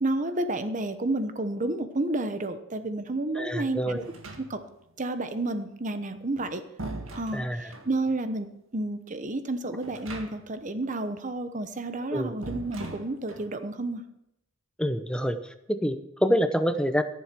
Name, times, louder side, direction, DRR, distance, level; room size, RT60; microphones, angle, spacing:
voice 1, 0.0-4.0 4.4-4.6 5.0-6.6 7.2-8.5 8.7-14.0, right 2 dB, 40° right, 9 dB, 1.0 m, -30 dB
voice 2, 3.4-4.0 7.3-7.7 12.1-12.3 14.8-17.0, equal, 5° left, 9 dB, 0.7 m, -27 dB
sound 1, 4.0-4.9 6.1-8.0 9.8-10.6 10.9-11.0 12.4-13.5, right 2 dB, 85° right, 1.8 m, -41 dB
14.0 x 7.3 x 6.0 m, 0.82 s
head